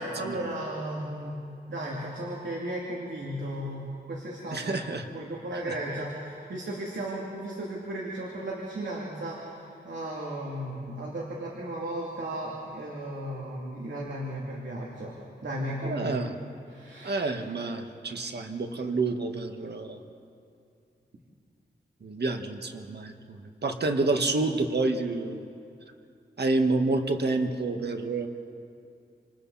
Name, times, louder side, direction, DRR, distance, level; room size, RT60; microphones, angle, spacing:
voice 1, 0.0-1.4 1.7-4.7 5.1-16.2 16.7-17.2, right 1 dB, 85° right, -4 dB, 3.1 m, -35 dB
voice 2, 4.5-5.1 5.5-5.7 15.8-16.3 17.0-20.0 22.0-25.5 26.4-28.3, right 3 dB, 65° right, 4 dB, 1.8 m, -29 dB
29.5 x 27.0 x 4.3 m, 2.5 s
wide cardioid pair, 75°, 18 cm